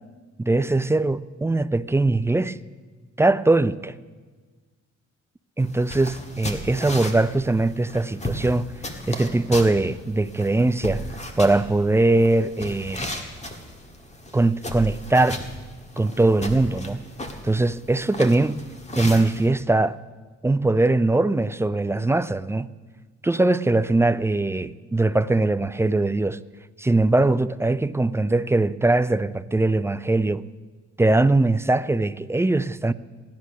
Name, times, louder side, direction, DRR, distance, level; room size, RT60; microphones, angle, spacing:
voice 1, 0.4-2.6 3.2-3.9 5.6-8.7 9.1-11.0 11.4-13.1 14.3-15.4 16.0-17.0 17.4-18.6 19.0-20.0 20.4-22.7 23.2-26.4 26.8-30.4 31.0-32.9, right 2 dB, 10° right, 0.3 m, -21 dB
sound 1, 5.6-19.5, left 1 dB, 20° left, 1.6 m, -35 dB
16.0 x 10.5 x 6.1 m
cardioid pair, 90°, 30 cm